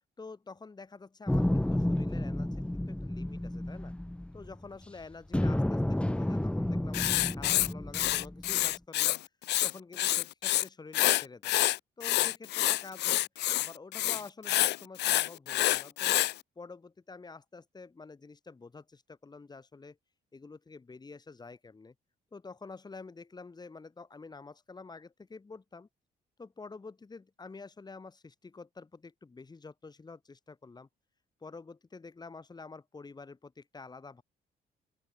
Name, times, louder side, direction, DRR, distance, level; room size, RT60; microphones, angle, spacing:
voice 1, 0.2-3.9 4.3-9.2 9.6-11.5 12.0-13.3 13.5-16.2 16.6-20.0 20.3-21.9 22.3-25.9 26.4-30.9 31.4-34.2, left 4 dB, 25° left, 3.2 m, -48 dB
sound 1, 1.3-4.8 5.3-8.7, left 1 dB, 5° left, 2.6 m, -31 dB
Writing, 6.9-9.2 9.4-10.6 10.9-16.3, left 15 dB, 80° left, 0.6 m, -27 dB
open air
cardioid pair, 110°, 17 cm